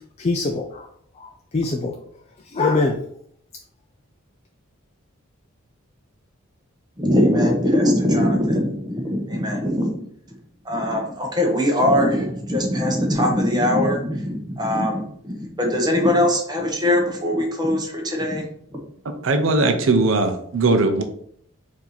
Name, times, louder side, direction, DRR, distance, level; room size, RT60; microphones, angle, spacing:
voice 1, 0.2-0.9 1.2-2.0 2.5-3.0, left 3 dB, 30° left, 2 dB, 0.4 m, -23 dB
voice 2, 7.0-10.1 10.6-18.5 18.7-18.8, left 1 dB, 20° right, 1 dB, 0.8 m, -21 dB
voice 3, 19.2-21.0, right 3 dB, 70° right, 6 dB, 0.6 m, -19 dB
4.5 x 2.7 x 3.9 m, 0.66 s
head